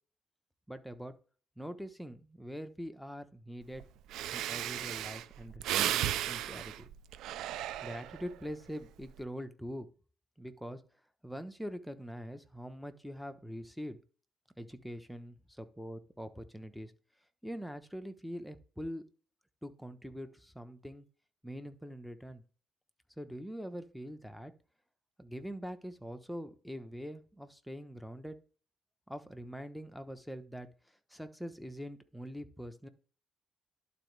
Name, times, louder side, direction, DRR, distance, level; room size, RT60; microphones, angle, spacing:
voice 1, 0.7-1.1 1.6-3.8 4.3-6.9 7.8-9.9 10.4-10.8 11.2-14.0 14.6-16.9 17.4-19.0 19.6-21.0 21.4-22.4 23.2-24.5 25.2-28.4 29.1-30.7 31.1-32.9, equal, ahead, 7 dB, 1.0 m, -43 dB
Breathing, 3.8-3.9 4.1-8.4 8.8-9.2, right 12 dB, 90° right, 0.4 m, -35 dB
11.5 x 4.0 x 3.3 m, 0.39 s
cardioid pair, 90°, 0 cm